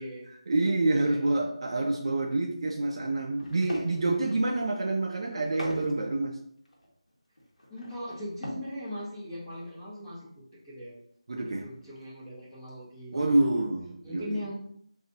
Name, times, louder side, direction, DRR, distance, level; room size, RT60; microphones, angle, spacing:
voice 1, 0.5-6.4 11.3-11.7 13.1-14.4, right 2 dB, 50° right, 2 dB, 0.4 m, -27 dB
voice 2, 1.0-1.6 7.7-11.0 11.3-13.6 14.0-14.6, equal, 10° left, -12 dB, 0.7 m, -40 dB
sound 1, 3.3-4.6 5.2-6.0 6.3-6.4 6.6-8.8 9.1-9.2 9.5-9.7 10.0-10.1 11.7-12.2 12.7-12.8 13.1-13.5, equal, 85° left, 1.3 m, -42 dB
3.8 x 2.7 x 2.7 m, 0.68 s
figure-of-eight pair, 165°, 4 cm